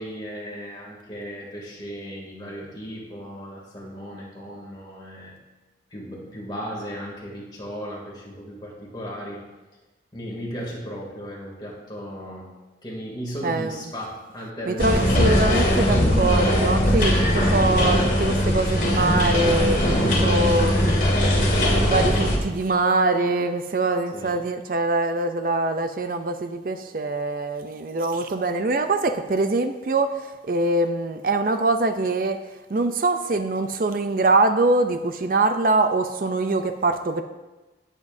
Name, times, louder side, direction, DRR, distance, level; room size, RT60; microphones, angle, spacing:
voice 1, 0.0-5.4 5.9-9.4 10.1-12.5 12.8-15.9 24.1-24.4, equal, 25° left, -3 dB, 2.6 m, -35 dB
voice 2, 13.4-13.8 14.7-20.8 21.5-32.4 32.7-37.2, right 2 dB, 50° right, 8 dB, 0.5 m, -23 dB
sound 1, 14.8-22.4, equal, 50° left, 2.2 m, -20 dB
18.5 x 7.5 x 2.7 m, 1.1 s
head